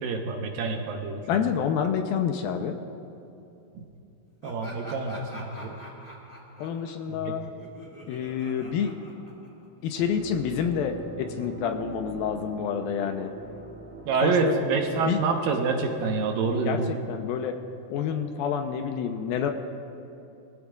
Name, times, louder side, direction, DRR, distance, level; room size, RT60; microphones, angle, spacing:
voice 1, 0.0-1.2 3.8-3.9 4.4-5.8 7.1-7.3 14.1-17.0, right 4 dB, 70° right, 2 dB, 2.5 m, -27 dB
voice 2, 1.3-2.8 6.6-7.4 8.1-9.0 9.8-13.3 14.2-14.6 15.0-15.2 16.7-17.6 17.9-19.5, left 8 dB, 80° left, 5 dB, 2.4 m, -28 dB
Laughter, 4.4-9.8, equal, 15° left, 1.8 m, -45 dB
sound 1, 9.9-15.2, right 3 dB, 45° right, 2.4 m, -40 dB
23.5 x 15.5 x 2.4 m, 2.8 s
omnidirectional pair, 4.5 m